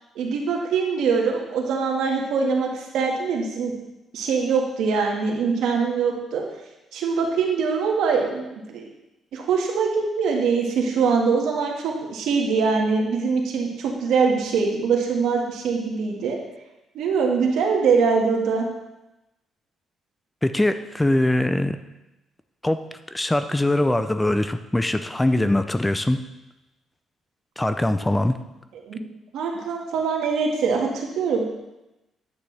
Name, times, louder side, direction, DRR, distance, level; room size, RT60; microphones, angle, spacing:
voice 1, 0.2-3.7 4.1-6.4 6.9-8.9 9.3-16.4 16.9-18.7 28.9-29.0 29.3-31.4, right 5 dB, 85° right, 0 dB, 1.8 m, -23 dB
voice 2, 20.4-21.8 22.6-22.8 23.1-26.2 27.6-28.3, left 1 dB, 10° left, 10 dB, 0.5 m, -22 dB
9.8 x 8.8 x 3.4 m, 0.97 s
cardioid pair, 90°, 0 cm